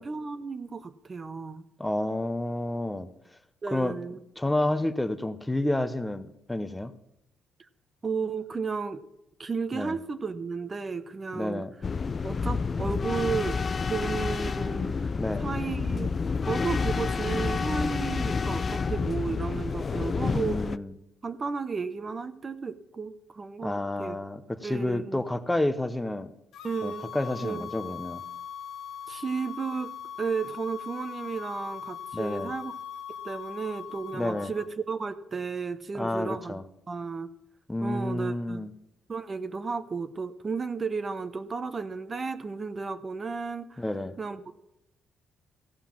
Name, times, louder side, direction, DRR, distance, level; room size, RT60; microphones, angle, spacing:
voice 1, 0.0-1.7 3.6-4.2 8.0-9.0 9.4-11.7 12.2-13.6 13.9-15.1 15.4-16.1 16.5-20.7 21.2-24.2 24.6-25.2 26.6-27.1 27.4-27.7 29.1-29.9 30.2-32.7 33.2-36.6 36.9-37.3 37.8-38.6 39.1-43.8 44.2-44.5, right 5 dB, 35° right, 10 dB, 0.8 m, -33 dB
voice 2, 1.8-3.1 3.7-4.0 4.4-6.9 9.7-10.0 11.3-11.7 15.2-15.5 20.3-20.9 23.6-26.3 26.8-28.2 32.1-32.5 34.1-34.5 35.9-36.6 37.7-38.7 43.8-44.1, left 1 dB, 10° left, 10 dB, 0.8 m, -30 dB
sound 1, 11.8-20.8, left 5 dB, 40° left, 0.3 m, -29 dB
sound 2, 26.5-34.7, left 8 dB, 85° left, 1.0 m, -40 dB
15.5 x 5.7 x 7.2 m, 0.84 s
cardioid pair, 90°, 0 cm